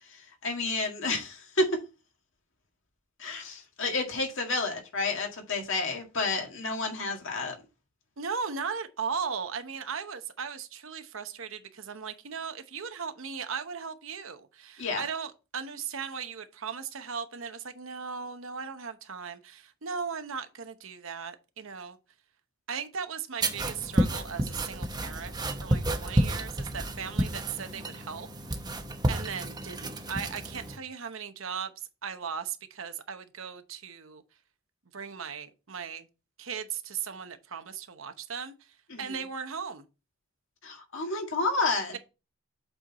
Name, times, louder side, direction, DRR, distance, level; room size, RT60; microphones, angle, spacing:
voice 1, 0.1-1.8 3.2-7.6 14.8-15.0 38.9-39.1 40.6-42.0, left 3 dB, 60° left, 1.9 m, -30 dB
voice 2, 8.2-22.0 22.7-25.4 25.6-28.3 29.1-31.7 32.0-34.2 34.9-36.1 36.4-38.5 39.0-39.8, right 6 dB, 65° right, 0.9 m, -37 dB
sound 1, 23.4-30.8, right 1 dB, 20° right, 0.9 m, -30 dB
7.8 x 4.5 x 4.1 m
head